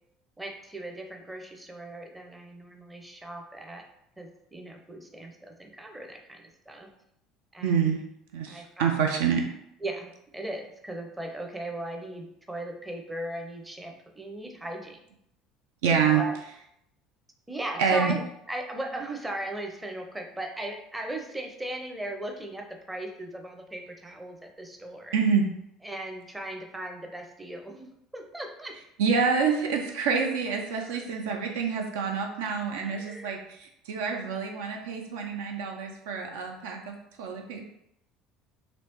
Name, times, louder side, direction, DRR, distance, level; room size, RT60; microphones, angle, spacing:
voice 1, 0.4-3.8 4.2-6.9 7.5-8.0 8.5-9.0 9.8-15.0 16.1-16.3 17.5-18.2 18.5-25.1 25.8-28.7 30.7-31.0 32.8-33.3, right 1 dB, 10° right, 2 dB, 0.6 m, -38 dB
voice 2, 7.6-8.0 8.3-9.5 15.8-16.2 17.8-18.2 25.1-25.5 29.0-37.7, right 6 dB, 65° right, 3 dB, 0.4 m, -27 dB
3.0 x 3.0 x 3.0 m, 0.78 s
figure-of-eight pair, 60°, 0 cm